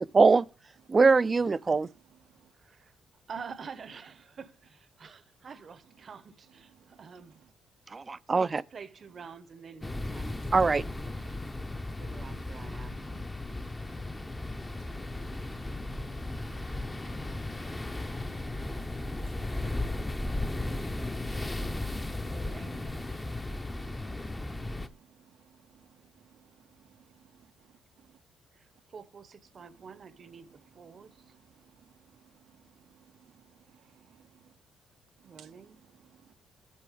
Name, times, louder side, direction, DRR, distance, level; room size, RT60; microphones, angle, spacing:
voice 1, 0.1-0.5 0.9-1.9 7.9-8.6 10.5-10.8, right 4 dB, 30° right, 0.4 m, -22 dB
voice 2, 2.6-2.9 3.3-7.4 8.3-10.5 11.2-11.4 12.0-13.2 16.4-16.9 18.1-18.9 22.3-23.0 28.6-31.1 35.2-35.8, right 6 dB, 45° right, 0.8 m, -48 dB
sound 1, 9.8-24.9, left 2 dB, 15° left, 0.7 m, -35 dB
voice 3, 12.9-13.2 13.9-14.3 14.7-14.9 15.6-16.0 16.4-16.5 17.9-18.0 18.4-18.6 21.2-21.3 24.5-24.7 26.4-26.5 26.8-26.9 31.8-31.9 32.9-33.0 33.3-33.4 33.7-33.8 34.1-34.2 35.4-35.6 36.0-36.3, right 9 dB, 80° right, 0.7 m, -60 dB
8.4 x 6.9 x 5.0 m
cardioid pair, 90°, 0 cm